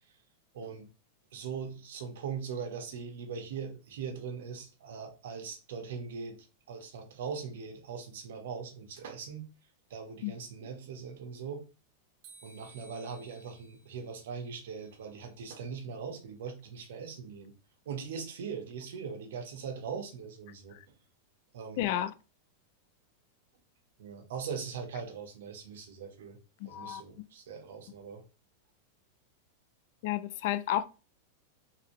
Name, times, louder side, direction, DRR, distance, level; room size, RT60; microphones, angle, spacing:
voice 1, 0.5-0.9 1.3-9.5 9.9-11.6 12.4-17.5 17.8-20.8 21.5-21.9 24.0-26.4 26.6-28.2, right 6 dB, 80° right, 1.1 m, -40 dB
sound 1, 12.2-15.3, right 3 dB, 40° right, 1.1 m, -58 dB
voice 2, 21.8-22.1 26.6-27.0 30.0-30.8, left 12 dB, 55° left, 0.3 m, -31 dB
3.9 x 2.7 x 3.0 m
supercardioid pair, 145°, 0 cm